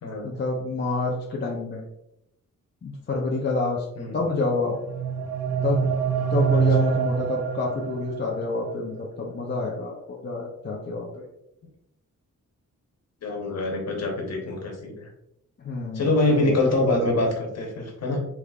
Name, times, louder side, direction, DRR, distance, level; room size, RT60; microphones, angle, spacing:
voice 1, 0.2-1.8 2.8-3.8 4.1-4.8 5.6-5.9 6.3-11.2 15.6-16.6, left 3 dB, 35° left, -2 dB, 0.6 m, -28 dB
sound 1, 4.6-8.5, right 7 dB, 55° right, 0.4 m, -25 dB
voice 2, 13.2-15.0 15.9-18.3, left 2 dB, 55° left, 1 dB, 1.2 m, -25 dB
5.0 x 3.4 x 2.4 m, 0.82 s
wide cardioid pair, 165°, 30 cm